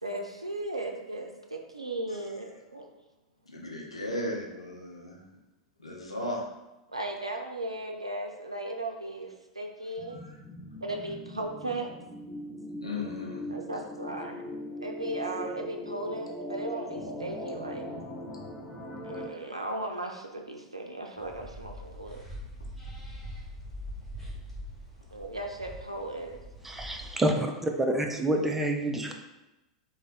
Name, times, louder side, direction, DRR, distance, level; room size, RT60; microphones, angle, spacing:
voice 1, 0.0-2.9 6.9-10.2 10.8-12.0 13.5-14.4 14.8-17.9 19.0-22.2 25.1-26.4, right 2 dB, 85° right, 2 dB, 0.4 m, -36 dB
voice 2, 3.5-5.2 5.8-6.5 10.1-10.4 12.8-13.4, left 1 dB, 85° left, -1 dB, 0.7 m, -36 dB
sound 1, 10.0-19.3, left 1 dB, 35° left, 0.7 m, -40 dB
sound 2, 21.2-27.1, equal, 5° left, 1.1 m, -43 dB
voice 3, 26.6-29.1, right 1 dB, 10° right, 3 dB, 0.4 m, -28 dB
3.4 x 2.1 x 3.8 m, 1.0 s
figure-of-eight pair, 90°, 3 cm